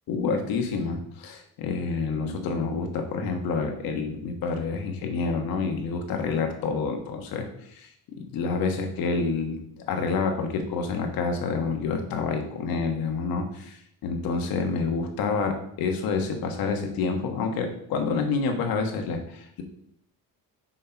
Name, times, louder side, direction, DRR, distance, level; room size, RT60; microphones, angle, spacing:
voice 1, 0.1-7.9 8.1-9.6 9.9-19.6, left 4 dB, 85° left, 4 dB, 1.4 m, -28 dB
6.5 x 5.5 x 4.5 m, 0.72 s
cardioid pair, 160°, 34 cm